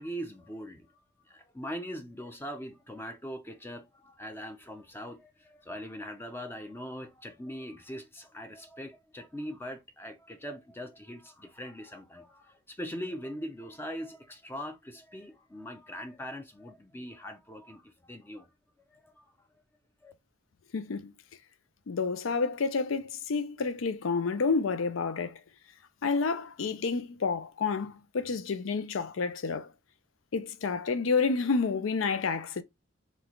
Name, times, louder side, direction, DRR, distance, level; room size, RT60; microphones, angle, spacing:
voice 1, 0.0-18.5 18.9-19.3 20.0-20.1, equal, 10° left, 0.5 m, -41 dB
voice 2, 20.7-21.1 21.9-25.4 26.0-29.7 30.3-32.6, left 4 dB, 75° left, 0.5 m, -29 dB
3.2 x 3.1 x 3.8 m
head